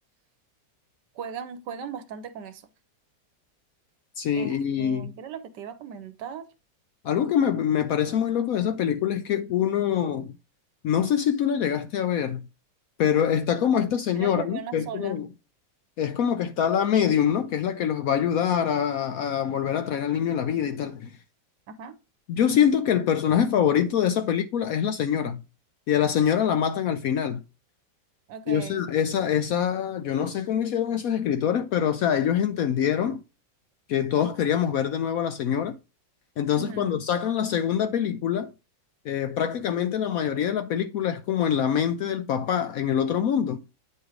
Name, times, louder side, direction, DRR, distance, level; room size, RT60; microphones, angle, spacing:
voice 1, 1.1-2.7 4.3-6.5 14.1-15.2 21.7-22.0 28.3-28.8 36.5-37.0, right 7 dB, 70° right, 1.3 m, -38 dB
voice 2, 4.2-5.1 7.0-10.3 10.8-12.4 13.0-15.3 16.0-21.2 22.3-25.4 25.9-27.4 28.5-33.2 33.9-35.8 36.4-38.5 39.0-43.6, left 9 dB, 75° left, 0.8 m, -24 dB
9.4 x 3.2 x 4.9 m
omnidirectional pair, 2.0 m